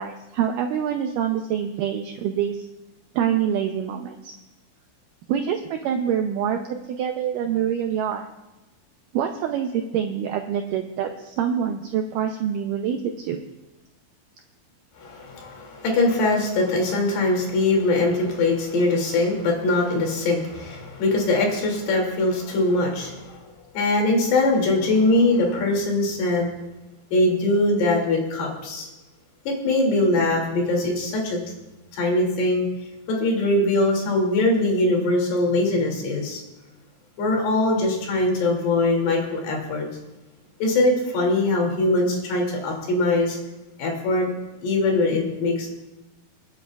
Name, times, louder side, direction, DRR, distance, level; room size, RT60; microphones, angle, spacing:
voice 1, 0.0-2.7 3.2-4.3 5.3-6.6 6.9-8.3 9.1-13.4, right 8 dB, 85° right, 4 dB, 1.9 m, -25 dB
voice 2, 15.0-26.5 27.1-28.9 29.5-31.4 31.9-32.7 33.1-36.4 37.2-39.9 40.6-43.4 43.8-44.3 44.6-45.7, left 2 dB, 85° left, 0 dB, 4.6 m, -22 dB
28.0 x 9.7 x 2.4 m, 1.1 s
omnidirectional pair, 4.6 m